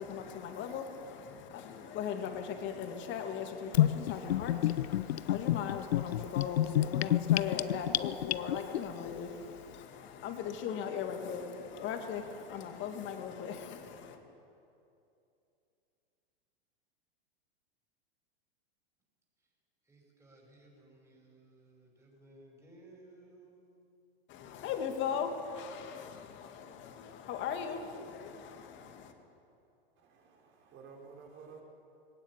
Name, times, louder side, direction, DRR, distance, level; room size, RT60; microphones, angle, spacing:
voice 1, 0.0-14.2 24.3-29.1, left 7 dB, 40° left, 2.4 m, -39 dB
Gurgling / Bathtub (filling or washing), 3.7-8.8, left 13 dB, 80° left, 0.6 m, -29 dB
voice 2, 19.8-23.6, right 2 dB, 10° right, 5.8 m, -58 dB
voice 3, 30.0-31.6, right 5 dB, 40° right, 4.6 m, -53 dB
20.0 x 17.0 x 8.6 m
hypercardioid pair, 110°, 30 cm